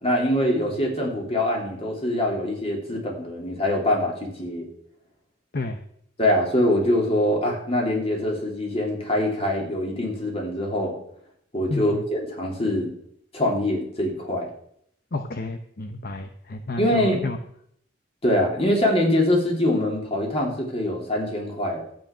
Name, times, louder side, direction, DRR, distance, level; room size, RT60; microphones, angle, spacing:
voice 1, 0.0-4.7 6.2-10.9 11.5-12.9 13.3-14.5 16.8-17.2 18.2-21.9, left 1 dB, 30° left, 0 dB, 3.4 m, -24 dB
voice 2, 11.7-12.0 15.1-17.4, left 2 dB, 50° left, 8 dB, 0.8 m, -31 dB
13.0 x 9.1 x 6.1 m, 0.69 s
head